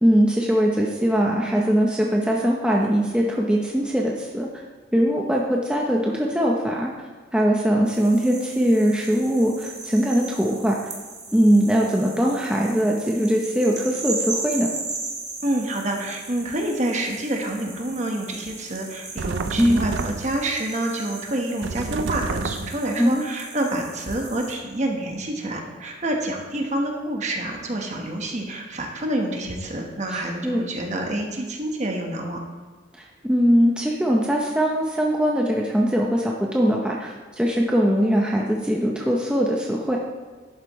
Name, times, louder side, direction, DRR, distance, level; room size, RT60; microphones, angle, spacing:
voice 1, 0.0-4.5 4.9-6.9 7.3-10.8 11.3-14.7 19.6-19.9 23.0-23.3 30.1-30.6 33.0-40.0, equal, 5° right, -2 dB, 0.7 m, -21 dB
sound 1, 7.9-24.5, right 3 dB, 20° right, 1.6 m, -37 dB
voice 2, 15.4-32.4, right 1 dB, 40° right, 2 dB, 1.3 m, -27 dB
sound 2, 19.2-20.5 21.6-22.9, right 4 dB, 80° right, 0.5 m, -29 dB
11.5 x 8.1 x 3.1 m, 1.5 s
head